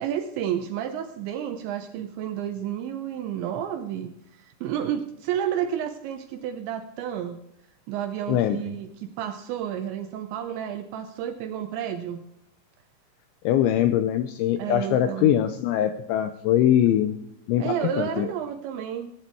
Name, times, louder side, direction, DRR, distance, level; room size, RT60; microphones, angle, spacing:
voice 1, 0.0-7.4 7.9-12.2 14.6-15.4 17.6-19.1, right 9 dB, 80° right, 7 dB, 2.6 m, -31 dB
voice 2, 8.3-8.6 13.4-17.1 17.5-18.3, left 11 dB, 85° left, 10 dB, 2.7 m, -22 dB
16.5 x 10.5 x 4.6 m, 0.80 s
omnidirectional pair, 6.0 m